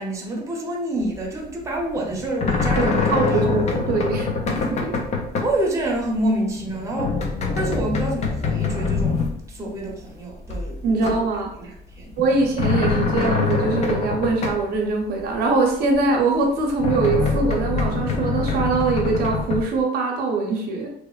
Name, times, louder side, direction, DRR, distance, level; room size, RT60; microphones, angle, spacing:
voice 1, 0.0-3.6 5.4-7.2 7.5-10.8 11.1-11.2 11.6-12.2, right 1 dB, 15° right, -2 dB, 0.7 m, -27 dB
sound 1, 1.0-1.4 1.6-5.6 5.8-6.2 6.5-10.0 10.4-11.5 11.9-14.7 15.2-15.3 15.9-16.0 16.6-19.8, left 4 dB, 40° left, 0.5 m, -24 dB
voice 2, 2.8-4.9 10.8-11.5 12.2-20.9, right 3 dB, 70° right, 0 dB, 0.6 m, -22 dB
2.8 x 2.0 x 2.3 m, 0.75 s
cardioid pair, 110°, 17 cm